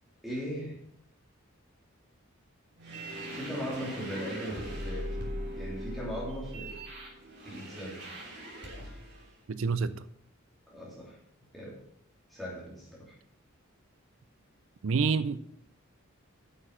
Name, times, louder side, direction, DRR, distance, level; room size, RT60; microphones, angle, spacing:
voice 1, 0.2-0.8 3.3-5.1 5.5-6.7 7.4-8.1 10.7-11.2 11.5-11.8 12.3-13.1, equal, ahead, -7 dB, 3.0 m, -38 dB
sound 1, 2.8-9.2, equal, 55° right, 3.4 m, -40 dB
voice 2, 9.5-10.0 14.8-15.4, right 5 dB, 70° right, 14 dB, 0.5 m, -28 dB
8.7 x 6.9 x 5.8 m, 0.70 s
head